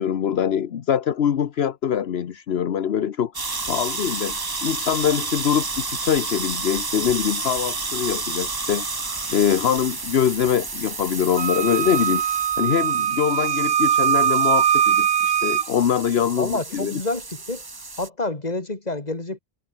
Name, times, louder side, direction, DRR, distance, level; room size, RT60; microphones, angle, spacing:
voice 1, 0.0-3.3 3.7-4.4 4.6-8.9 9.3-12.2 12.6-17.0, left 8 dB, 75° left, 1.1 m, -23 dB
sound 1, 3.3-18.1, right 3 dB, 25° right, 0.9 m, -31 dB
Wind instrument woodwind instrument, 11.4-15.7, right 9 dB, 70° right, 1.0 m, -21 dB
voice 2, 16.4-17.6 18.0-19.4, left 2 dB, 40° left, 2.9 m, -28 dB
omnidirectional pair, 1.1 m